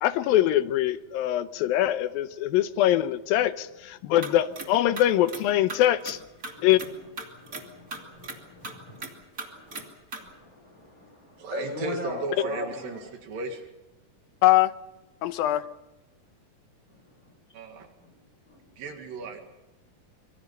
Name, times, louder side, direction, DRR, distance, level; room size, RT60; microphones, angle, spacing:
voice 1, 0.0-6.2 6.6-6.8 14.4-14.7 15.2-15.6, left 13 dB, 85° left, 12 dB, 2.7 m, -23 dB
sound 1, 4.2-4.7 5.0-5.4 5.7-6.9 7.2-7.6 7.9-8.4 8.6-9.1 9.4-9.8 10.1-10.2, right 3 dB, 25° right, 2.6 m, -37 dB
voice 2, 6.5-7.0 7.3-9.1 9.5-9.9 10.2-13.1 16.9-17.3 18.0-18.1 18.4-18.6, left 2 dB, 10° left, 2 dB, 6.5 m, -40 dB
voice 3, 11.4-13.6 17.5-17.9 18.8-19.4, right 3 dB, 75° right, 5 dB, 3.6 m, -35 dB
25.5 x 24.5 x 5.6 m, 0.97 s
omnidirectional pair, 4.0 m